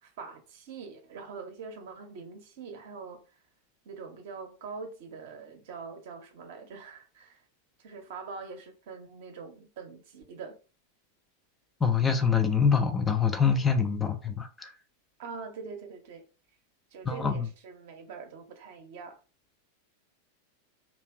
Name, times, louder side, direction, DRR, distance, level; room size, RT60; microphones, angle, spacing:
voice 1, 0.0-3.2 3.8-7.4 7.8-10.6 15.2-16.2 16.9-19.2, right 5 dB, 55° right, 0.6 m, -43 dB
voice 2, 11.8-14.7 17.0-17.5, left 6 dB, 15° left, 0.3 m, -25 dB
2.8 x 2.1 x 2.2 m
figure-of-eight pair, 90°, 0 cm